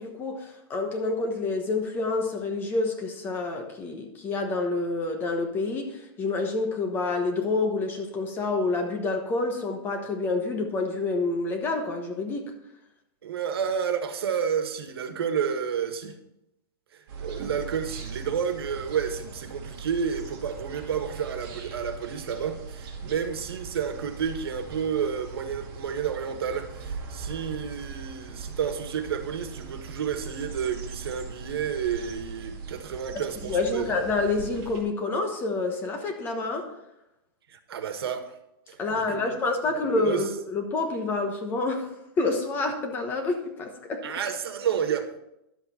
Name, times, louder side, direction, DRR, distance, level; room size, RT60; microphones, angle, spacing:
voice 1, 0.0-12.4 33.5-36.7 38.8-41.9 42.2-44.0, left 3 dB, 15° left, 1.1 m, -28 dB
voice 2, 13.2-16.2 16.9-33.9 37.5-38.3 38.7-39.4 39.7-40.2 44.0-45.2, right 7 dB, 90° right, 1.5 m, -30 dB
sound 1, 17.1-34.8, right 5 dB, 30° right, 2.4 m, -40 dB
11.5 x 7.9 x 4.3 m
supercardioid pair, 170°, 13 cm